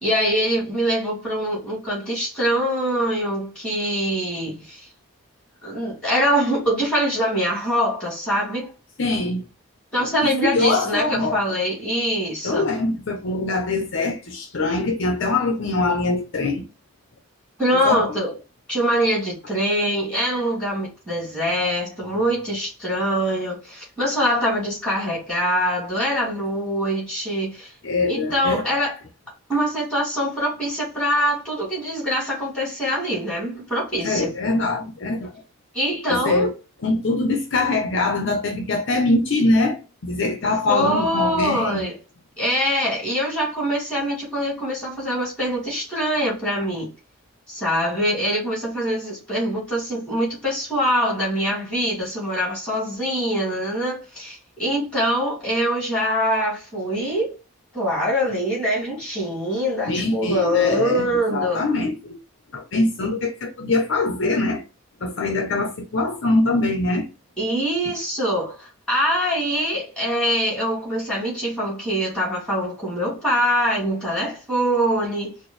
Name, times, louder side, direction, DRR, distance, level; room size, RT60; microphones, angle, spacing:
voice 1, 0.0-4.9 5.6-8.7 9.9-12.7 17.6-18.3 18.7-27.7 28.1-28.9 29.5-34.3 35.7-36.5 40.7-42.0 42.4-46.9 47.5-57.3 57.7-61.6 67.4-75.4, equal, 5° left, 2.1 m, -24 dB
voice 2, 9.0-9.4 10.4-11.4 12.4-16.6 17.8-18.0 27.8-28.6 34.0-35.3 36.1-36.5 36.8-39.8 40.0-41.9 59.9-61.1 61.3-62.2 62.5-64.6 65.0-67.1, left 2 dB, 55° left, 0.6 m, -23 dB
4.3 x 2.0 x 3.1 m
head